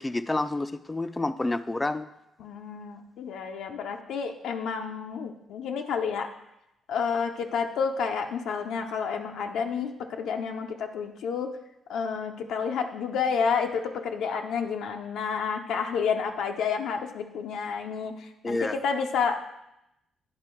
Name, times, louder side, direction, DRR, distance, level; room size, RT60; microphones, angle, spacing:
voice 1, 0.0-2.1 18.4-18.8, left 2 dB, 15° left, 12 dB, 0.4 m, -29 dB
voice 2, 2.4-6.3 6.9-11.5 11.9-19.4, left 6 dB, 80° left, 4 dB, 0.6 m, -30 dB
9.5 x 4.4 x 4.5 m, 0.86 s
cardioid pair, 90°, 0 cm